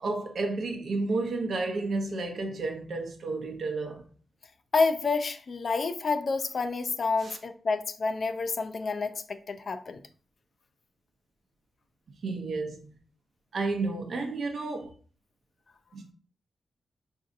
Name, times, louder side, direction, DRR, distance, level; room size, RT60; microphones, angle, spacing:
voice 1, 0.0-4.0 7.2-7.4 12.2-13.0 13.5-14.9 15.9-16.0, right 3 dB, 60° right, 0.7 m, -31 dB
voice 2, 4.7-10.0, left 4 dB, 50° left, 0.4 m, -29 dB
4.9 x 2.7 x 2.5 m
wide cardioid pair, 130°, 0 cm